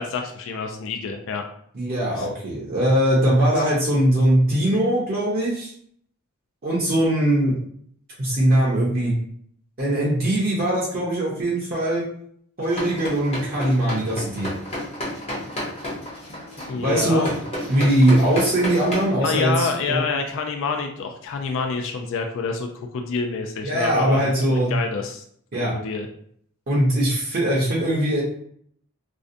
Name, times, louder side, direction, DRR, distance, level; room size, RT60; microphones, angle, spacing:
voice 1, 0.0-1.5 2.2-2.3 3.6-3.7 16.7-17.3 19.2-25.2 25.6-26.1, left 4 dB, 60° left, 4 dB, 0.3 m, -27 dB
voice 2, 1.7-5.7 6.6-7.6 8.2-9.1 9.8-12.0 12.6-14.5 16.7-17.3 17.7-20.0 23.6-24.7 25.5-25.7 26.7-28.2, right 1 dB, 45° right, -5 dB, 0.6 m, -21 dB
sound 1, 12.6-19.0, equal, 30° left, 0.7 m, -31 dB
2.5 x 2.1 x 2.5 m, 0.64 s
head